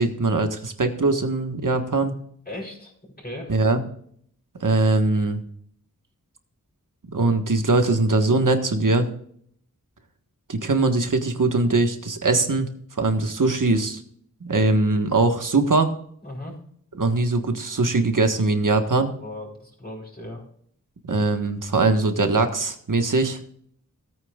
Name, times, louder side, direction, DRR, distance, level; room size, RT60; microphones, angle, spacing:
voice 1, 0.0-2.1 3.5-3.8 4.6-5.4 7.1-9.1 10.5-12.7 13.0-14.0 14.4-15.9 17.0-19.1 21.1-23.4, right 3 dB, 65° right, 7 dB, 1.5 m, -21 dB
voice 2, 2.5-3.5 16.2-16.6 19.2-20.4, left 1 dB, 25° left, -7 dB, 5.2 m, -37 dB
17.5 x 9.2 x 2.4 m, 0.64 s
wide cardioid pair, 65°, 34 cm